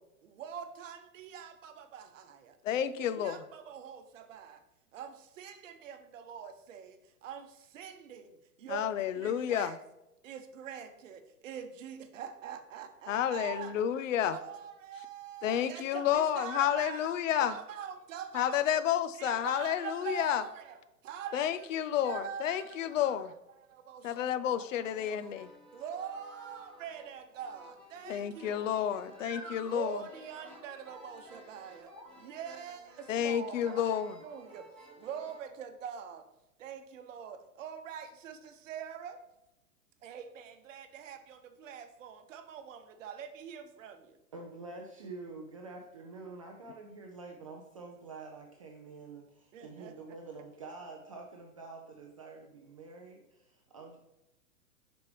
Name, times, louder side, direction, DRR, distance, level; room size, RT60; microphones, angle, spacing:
voice 1, 0.2-2.6 3.0-4.6 4.9-9.8 10.2-13.8 14.2-17.1 17.4-18.7 19.2-23.2 23.7-25.1 25.7-29.0 29.6-34.7 35.0-36.2 36.6-39.2 40.0-44.2 49.5-49.9, right 8 dB, 55° right, 0.9 m, -44 dB
voice 2, 2.6-3.4 8.7-9.7 13.1-14.4 15.4-17.6 18.3-20.4 21.3-23.3 24.0-25.5 28.1-30.0 33.1-34.2, left 10 dB, 55° left, 0.5 m, -30 dB
sound 1, 24.8-35.5, right 1 dB, 5° left, 1.7 m, -52 dB
voice 3, 44.3-54.0, right 3 dB, 25° right, 0.3 m, -47 dB
6.4 x 5.3 x 3.1 m
hypercardioid pair, 115°, 46 cm